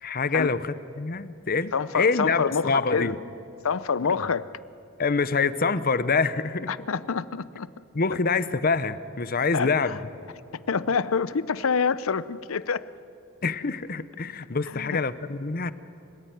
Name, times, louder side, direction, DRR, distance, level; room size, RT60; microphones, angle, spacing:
voice 1, 0.0-3.2 5.0-6.9 7.9-10.0 13.4-15.7, left 4 dB, 45° left, 0.8 m, -26 dB
voice 2, 1.7-3.2 3.6-4.5 6.7-7.7 9.5-10.0 10.5-12.9 14.7-15.0, left 5 dB, 80° left, 0.6 m, -27 dB
29.5 x 15.5 x 9.2 m
head